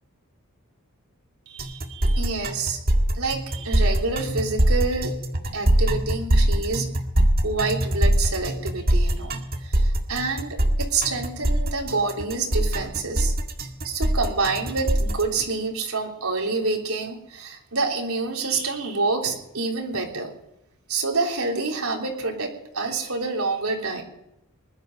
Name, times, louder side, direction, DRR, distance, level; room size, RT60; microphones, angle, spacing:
voice 1, 1.5-2.8 3.1-5.2 5.5-6.9 7.4-13.3 13.8-20.3 20.9-24.0, right 3 dB, 90° right, 0 dB, 3.5 m, -27 dB
sound 1, 1.6-15.2, right 1 dB, 45° right, 1.9 m, -22 dB
21.0 x 12.0 x 5.4 m, 0.84 s
head